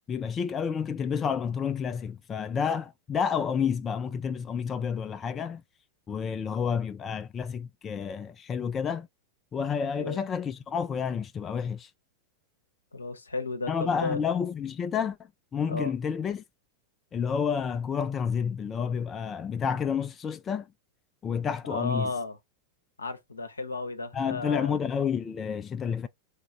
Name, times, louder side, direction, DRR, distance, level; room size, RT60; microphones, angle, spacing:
voice 1, 0.1-5.6 6.1-9.1 9.5-11.9 13.7-16.4 17.1-20.7 21.2-22.1 24.1-26.1, left 7 dB, 25° left, 0.3 m, -30 dB
voice 2, 12.9-14.2 15.7-15.9 21.6-22.4 23.0-24.8, left 3 dB, 75° left, 0.7 m, -33 dB
3.6 x 2.3 x 3.1 m
figure-of-eight pair, 90°, 0 cm